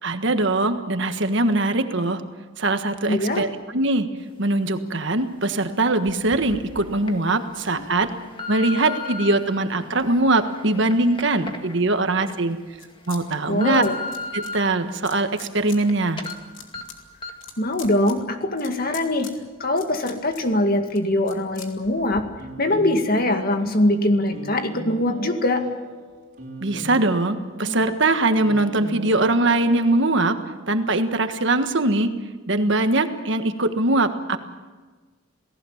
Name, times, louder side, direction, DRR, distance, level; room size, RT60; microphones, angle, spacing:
voice 1, 0.0-2.2 2.6-4.1 4.4-8.1 8.5-12.6 13.1-13.8 14.3-16.2 26.6-30.4 30.7-32.1 32.5-34.4, right 2 dB, 60° right, 8 dB, 1.5 m, -22 dB
voice 2, 3.1-3.5 13.5-14.0 17.6-19.3 19.6-22.3 22.6-25.7, left 1 dB, 45° left, 6 dB, 2.1 m, -22 dB
sound 1, 6.1-6.2 6.8-7.1 7.7-9.4 10.0-12.3 12.7-12.8 13.3-14.6 15.0-15.9 16.2-16.3 16.7-16.8 17.2-17.5 17.8-17.9, left 3 dB, 25° left, 1.8 m, -35 dB
sound 2, 6.2-11.3 11.8-13.2 13.5-14.5 15.0-15.8 16.1-22.2, left 4 dB, 70° left, 3.0 m, -43 dB
sound 3, 22.4-30.5, right 1 dB, 40° right, 5.9 m, -38 dB
28.0 x 18.0 x 7.3 m, 1.3 s
head